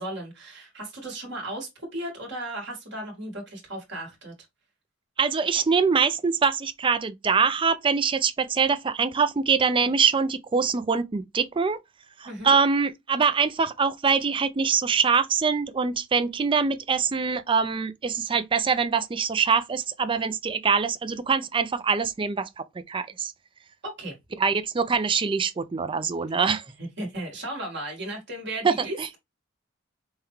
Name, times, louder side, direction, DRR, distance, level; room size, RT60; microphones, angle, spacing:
voice 1, 0.0-4.3 12.2-12.6 23.8-24.2 26.8-29.2, right 1 dB, 55° right, 1.8 m, -35 dB
voice 2, 5.2-11.8 12.2-23.3 24.4-26.6 28.6-29.1, right 5 dB, 25° right, 0.4 m, -24 dB
5.5 x 2.3 x 3.0 m
head